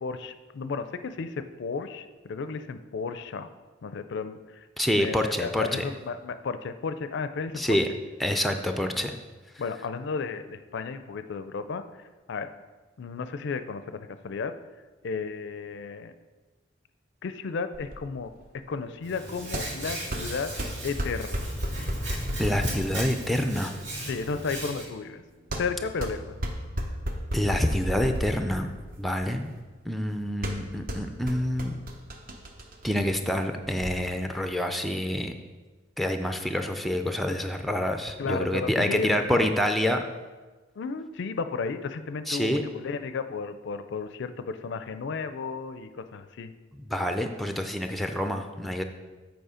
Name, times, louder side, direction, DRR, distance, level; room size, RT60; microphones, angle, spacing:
voice 1, 0.0-3.5 3.8-4.6 4.9-7.8 9.6-11.8 12.3-12.5 13.0-14.6 15.0-16.1 17.2-18.3 18.7-20.5 20.8-21.4 24.1-25.2 25.6-26.3 38.2-39.5 40.8-46.5, left 4 dB, 65° left, 11 dB, 0.4 m, -33 dB
voice 2, 4.8-5.9 7.5-7.9 8.2-9.1 22.4-23.7 27.3-28.7 29.0-29.5 29.9-31.7 32.8-35.3 36.0-40.0 42.3-42.6 46.9-48.8, left 1 dB, ahead, 6 dB, 0.4 m, -27 dB
sound 1, 17.7-33.9, equal, 45° right, 0.8 m, -35 dB
Hands, 19.0-24.8, right 1 dB, 70° right, 2.5 m, -37 dB
8.0 x 4.5 x 5.0 m, 1.3 s
head